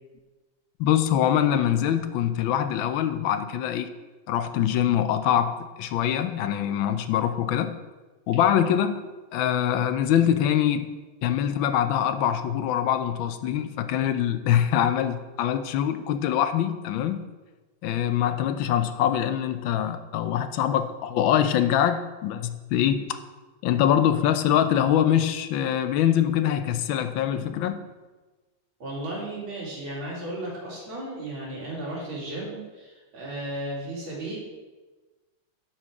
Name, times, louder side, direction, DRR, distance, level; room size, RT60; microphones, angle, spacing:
voice 1, 0.8-3.9 4.3-7.8 8.3-9.0 9.3-10.9 11.2-17.2 17.8-23.2 23.6-27.8, left 10 dB, 90° left, 10 dB, 1.4 m, -24 dB
voice 2, 28.8-34.4, right 1 dB, 85° right, -5 dB, 3.0 m, -34 dB
11.5 x 4.4 x 4.8 m, 1.2 s
omnidirectional pair, 2.1 m